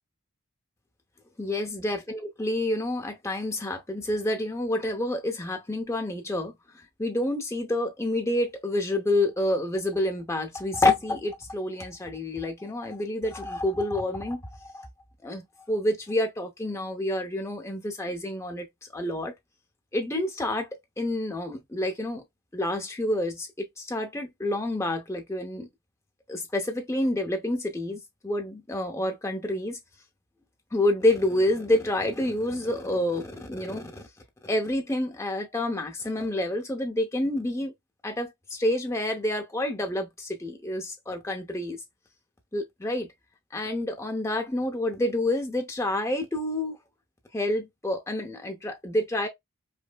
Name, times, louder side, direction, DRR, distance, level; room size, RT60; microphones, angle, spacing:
voice 1, 1.4-6.5 7.0-14.9 15.2-18.7 18.9-19.3 19.9-20.7 21.0-22.2 22.5-23.5 23.8-25.7 26.3-29.8 30.7-34.0 34.4-37.7 38.0-41.8 42.5-43.1 43.5-46.8 47.3-49.3, left 1 dB, 15° left, 0.6 m, -28 dB
5.1 x 2.0 x 2.2 m
head